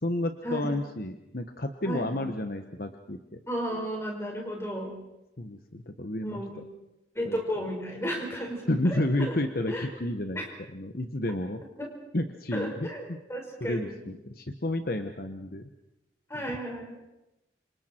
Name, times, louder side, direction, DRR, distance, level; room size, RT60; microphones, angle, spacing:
voice 1, 0.0-3.2 5.4-6.6 7.2-7.4 8.7-10.4 10.7-11.6 12.1-13.2 13.6-15.7 16.3-16.4, left 1 dB, 55° left, 7 dB, 1.2 m, -31 dB
voice 2, 1.9-2.3 3.5-4.9 6.2-6.6 7.1-9.0 9.7-9.8 10.3-10.5 11.8-11.9 12.5-14.0 16.3-17.0, equal, 15° left, 0 dB, 4.9 m, -34 dB
28.0 x 26.5 x 4.5 m, 0.92 s
head